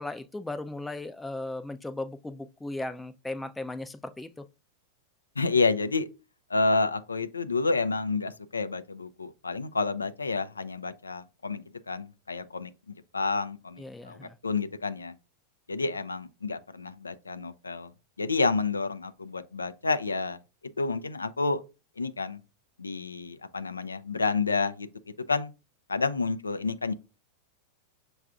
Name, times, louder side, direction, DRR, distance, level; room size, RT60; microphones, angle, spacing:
voice 1, 0.0-4.4 13.8-14.4, left 2 dB, 10° left, 0.4 m, -37 dB
voice 2, 5.4-6.1 6.5-15.2 15.7-17.9 18.2-20.4 20.8-21.6 22.0-22.4 22.8-24.9 25.3-25.5 25.9-26.9, left 3 dB, 85° left, 0.3 m, -29 dB
6.3 x 2.3 x 2.4 m
figure-of-eight pair, 90°, 0 cm